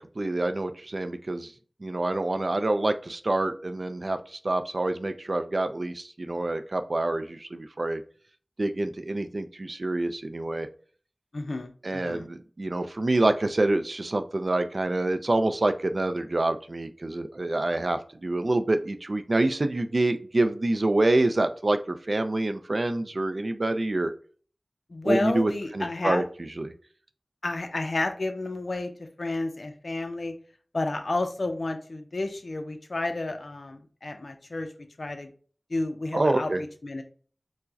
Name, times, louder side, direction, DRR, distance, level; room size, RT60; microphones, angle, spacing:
voice 1, 0.0-1.5 1.8-8.0 8.6-10.7 11.8-24.1 25.0-26.2 26.6-26.7 36.1-36.6, right 2 dB, 65° right, 9 dB, 0.3 m, -27 dB
voice 2, 11.3-12.3 24.9-26.2 27.4-28.9 29.2-30.3 30.7-34.7 35.0-35.3 35.7-37.0, left 2 dB, 80° left, 6 dB, 0.4 m, -31 dB
4.5 x 2.1 x 2.6 m, 0.43 s
wide cardioid pair, 40°, 0 cm